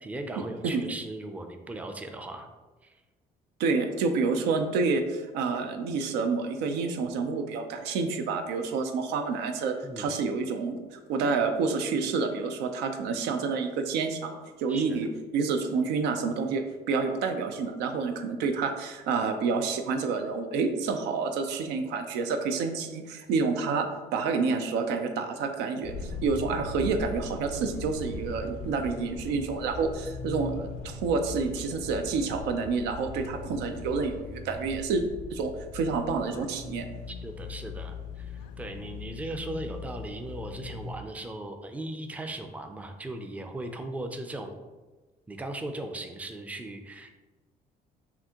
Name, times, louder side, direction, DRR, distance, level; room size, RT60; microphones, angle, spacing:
voice 1, 0.0-2.5 2.8-2.9 9.8-10.1 14.7-15.0 37.1-44.5 45.3-47.1, right 1 dB, 10° right, 5 dB, 0.4 m, -38 dB
voice 2, 3.6-23.9 24.1-35.0 35.3-36.9, right 4 dB, 90° right, 6 dB, 0.5 m, -29 dB
sound 1, 25.8-41.0, left 5 dB, 80° left, 0.4 m, -40 dB
5.8 x 2.5 x 2.9 m, 1.2 s
cardioid pair, 110°, 17 cm